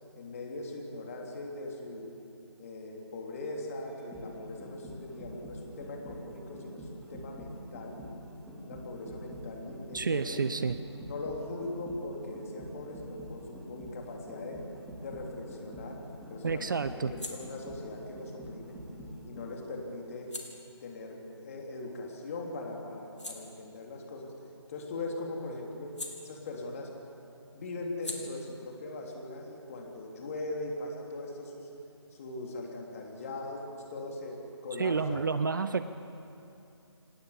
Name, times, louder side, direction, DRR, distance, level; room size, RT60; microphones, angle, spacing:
voice 1, 0.1-2.1 2.6-8.0 8.6-10.6 11.1-14.6 15.0-16.0 16.3-18.8 19.2-20.3 20.8-24.3 24.7-25.9 26.2-26.9 27.5-31.7 32.1-33.6 33.9-35.3, left 2 dB, 30° left, 0 dB, 3.3 m, -40 dB
sound 1, 3.9-19.7 20.1-20.2, equal, ahead, 2.9 m, -45 dB
voice 2, 9.9-10.7 16.4-17.1 34.8-35.8, right 5 dB, 45° right, 12 dB, 0.7 m, -29 dB
sound 2, 17.0-22.3 22.7-26.9 27.2-30.6, left 2 dB, 80° left, 4.1 m, -49 dB
27.0 x 19.5 x 7.2 m, 2.8 s
figure-of-eight pair, 150°, 15 cm